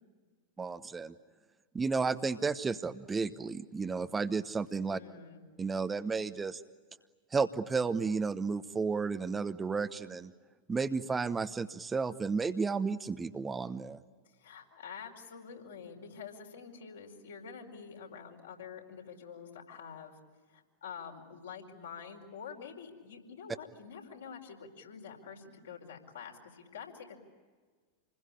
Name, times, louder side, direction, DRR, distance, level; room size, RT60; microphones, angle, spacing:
voice 1, 0.6-1.1 1.7-5.0 5.6-6.6 7.3-10.3 10.7-14.0, right 4 dB, 15° right, 10 dB, 1.0 m, -32 dB
voice 2, 4.9-5.4 14.2-20.1 20.5-27.2, left 6 dB, 65° left, 2 dB, 4.9 m, -47 dB
28.5 x 21.0 x 10.0 m, 1.5 s
figure-of-eight pair, 90°, 0 cm